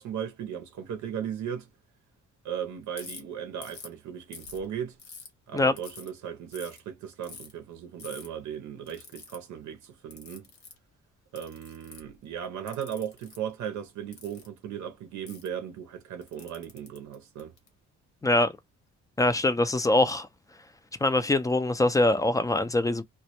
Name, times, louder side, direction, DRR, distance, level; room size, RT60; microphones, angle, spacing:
voice 1, 0.0-1.7 2.4-5.0 5.5-10.5 11.3-17.5, right 8 dB, 75° right, 0.6 m, -37 dB
Ratchet pawl, 3.0-3.2 3.6-3.9 4.3-5.3 5.8-6.1 6.5-6.8 7.2-7.5 8.0-8.3 8.9-9.4 10.1-10.8 11.4-12.1 12.7-13.4 14.1-14.5 15.3-15.5 16.2-17.7, left 4 dB, 75° left, 1.1 m, -46 dB
voice 2, 19.2-20.3 21.0-23.0, left 2 dB, 10° left, 0.3 m, -23 dB
2.1 x 2.1 x 2.8 m
cardioid pair, 90°, 30 cm